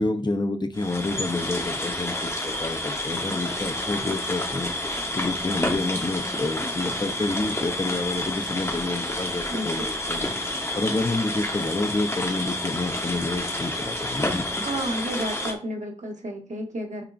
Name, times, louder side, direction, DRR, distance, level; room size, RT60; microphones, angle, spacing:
voice 1, 0.0-4.7 5.1-10.3 10.7-14.5, left 2 dB, 40° left, 7 dB, 0.8 m, -28 dB
sound 1, 0.7-15.5, left 1 dB, 20° left, 1.2 m, -29 dB
voice 2, 9.5-9.8 14.6-17.0, right 1 dB, 80° right, 2 dB, 1.4 m, -31 dB
8.9 x 4.9 x 2.6 m, 0.40 s
wide cardioid pair, 65°, 12 cm